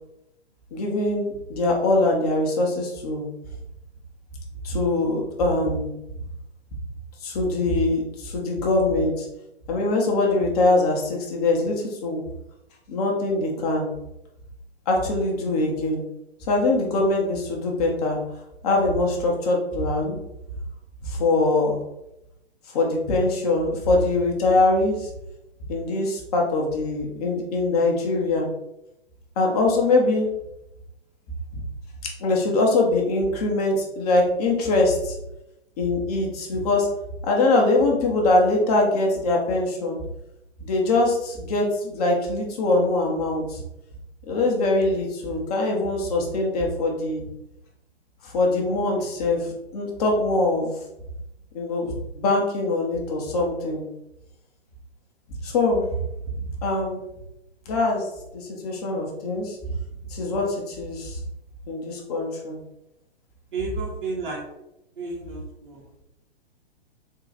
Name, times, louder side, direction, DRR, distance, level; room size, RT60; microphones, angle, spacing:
voice 1, 0.7-3.3 4.6-5.9 7.2-9.3 9.7-12.2 12.9-13.9 14.9-16.0 16.5-18.2 18.6-20.2 21.0-21.8 22.7-25.1 25.7-28.5 29.4-30.3 32.2-35.2 35.8-36.9 37.2-40.0 40.6-43.6 44.3-47.2 48.2-50.7 51.5-53.9 55.4-55.8 56.6-57.0 57.7-58.1 58.3-59.6 60.1-61.2 61.7-62.6, left 2 dB, 35° left, 0 dB, 1.0 m, -23 dB
voice 2, 63.5-64.4 65.0-65.7, right 4 dB, 50° right, -2 dB, 0.9 m, -32 dB
3.8 x 2.4 x 4.0 m, 0.87 s
figure-of-eight pair, 115°, 32 cm